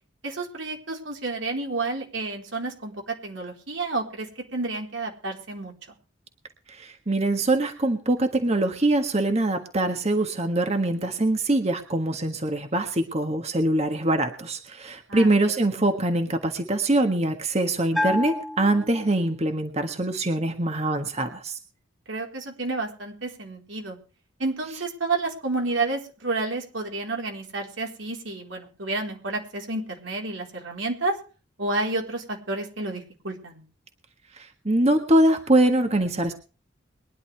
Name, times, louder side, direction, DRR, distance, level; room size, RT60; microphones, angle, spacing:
voice 1, 0.2-5.7 15.1-15.5 22.1-24.0 24.4-31.2 31.6-33.6, right 3 dB, 90° right, 1 dB, 4.3 m, -30 dB
voice 2, 6.7-21.6 34.4-36.3, right 1 dB, 35° right, 6 dB, 1.6 m, -23 dB
Bell, 17.9-19.6, left 1 dB, ahead, 0.8 m, -30 dB
22.5 x 11.0 x 3.4 m, 0.36 s
head